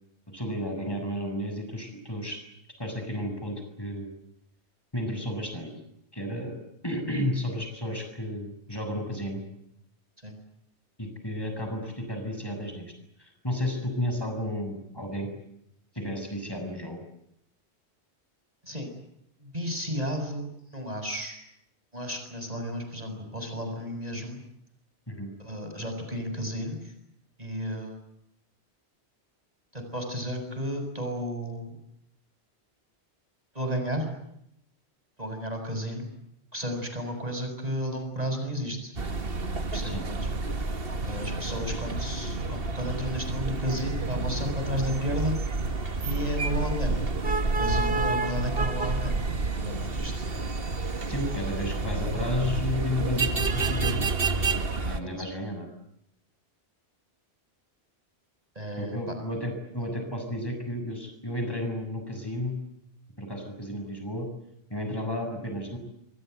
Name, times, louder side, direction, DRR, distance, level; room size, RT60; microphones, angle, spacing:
voice 1, 0.3-2.4 2.8-4.1 4.9-5.7 6.1-6.5 6.8-9.4 11.0-12.9 13.2-15.3 15.9-17.0 25.1-25.3 39.8-40.0 51.1-54.1 54.4-54.5 54.8-55.7 58.8-62.6 63.2-64.3 64.7-65.8, left 1 dB, 20° left, 5 dB, 7.3 m, -32 dB
voice 2, 19.4-21.4 21.9-24.4 25.4-26.9 27.4-28.0 29.7-31.7 33.5-34.1 35.2-36.1 36.5-38.9 39.7-40.2 41.0-45.4 46.0-46.9 47.6-49.1 49.5-50.2 55.0-55.3 58.5-59.0, equal, 35° right, 6 dB, 6.8 m, -33 dB
sound 1, 39.0-55.0, right 3 dB, 60° right, 2.0 m, -29 dB
28.5 x 25.0 x 8.0 m, 0.77 s
omnidirectional pair, 1.1 m